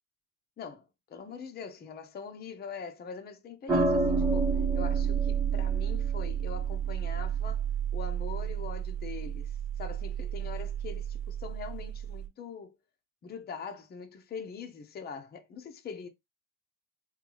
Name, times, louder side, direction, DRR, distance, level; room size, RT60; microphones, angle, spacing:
voice 1, 0.6-7.7 7.9-12.8 13.2-16.1, left 5 dB, 25° left, 0.8 m, -43 dB
sound 1, 3.7-12.2, right 6 dB, 5° right, 1.3 m, -30 dB
3.9 x 2.8 x 3.2 m
hypercardioid pair, 95°, 39 cm